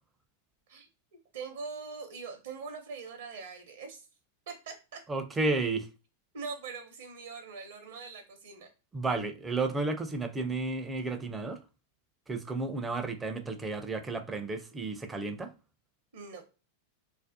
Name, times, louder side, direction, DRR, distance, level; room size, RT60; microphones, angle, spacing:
voice 1, 1.3-4.1 4.5-5.0 6.3-8.7 16.1-16.4, right 4 dB, 60° right, 0.6 m, -42 dB
voice 2, 5.1-5.9 8.9-11.6 12.3-15.5, right 3 dB, 15° right, 0.4 m, -32 dB
2.4 x 2.0 x 2.6 m
figure-of-eight pair, 90°, 0 cm